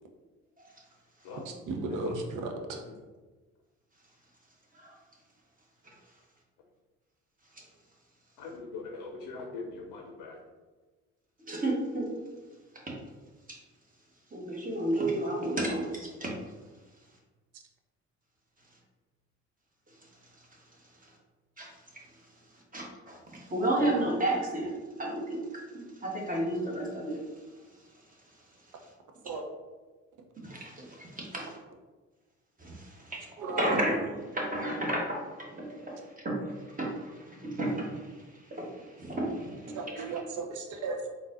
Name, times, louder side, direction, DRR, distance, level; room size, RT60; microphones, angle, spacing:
voice 1, 1.7-2.8 29.3-29.4 33.4-33.6 39.8-41.1, right 3 dB, 55° right, 4 dB, 0.7 m, -35 dB
voice 2, 8.4-10.4, left 3 dB, 65° left, 1 dB, 0.6 m, -41 dB
voice 3, 11.5-12.1 13.5-13.6 14.3-16.3 21.6-22.0 22.7-24.7 25.0-27.2 30.4-31.6 32.6-33.3 33.6-40.1, right 1 dB, 20° right, -2 dB, 1.1 m, -32 dB
3.7 x 2.7 x 2.5 m, 1.3 s
hypercardioid pair, 50°, 36 cm